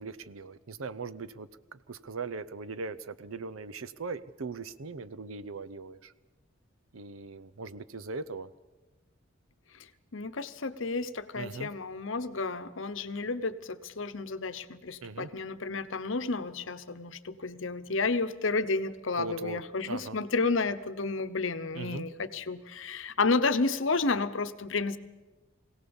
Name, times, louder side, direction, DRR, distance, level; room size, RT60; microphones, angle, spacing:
voice 1, 0.0-6.1 6.9-8.5 11.3-11.7 15.0-15.3 19.2-19.6 19.9-20.2 21.7-22.0, right 4 dB, 85° right, 16 dB, 0.8 m, -39 dB
voice 2, 10.1-25.0, left 3 dB, 65° left, 12 dB, 0.9 m, -31 dB
22.5 x 17.0 x 7.1 m, 1.2 s
head